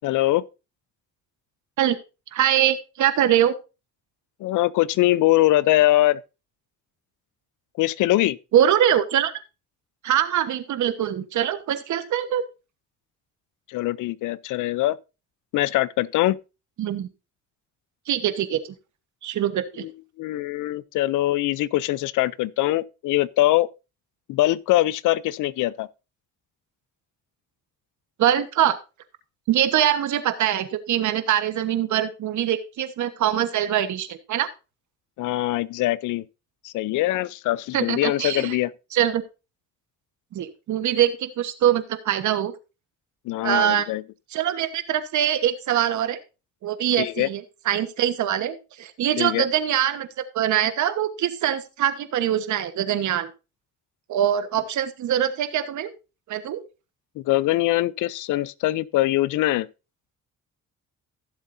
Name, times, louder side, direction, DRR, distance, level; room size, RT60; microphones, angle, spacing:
voice 1, 0.0-0.4 4.4-6.2 7.8-8.4 13.7-15.0 15.5-16.4 19.8-19.9 20.2-23.7 24.3-25.9 35.2-36.2 36.6-38.7 43.3-44.0 47.0-47.3 49.2-49.4 57.2-59.7, left 16 dB, 85° left, 0.5 m, -22 dB
voice 2, 2.3-3.5 8.5-9.3 10.0-12.4 16.8-17.1 18.1-18.7 19.2-19.9 28.2-28.8 29.5-34.5 37.7-38.6 38.9-39.2 40.3-42.5 43.4-43.9 44.3-46.2 46.6-53.3 54.1-55.9 56.3-56.6, right 11 dB, 70° right, 1.3 m, -23 dB
15.5 x 7.4 x 2.6 m
cardioid pair, 90°, 30 cm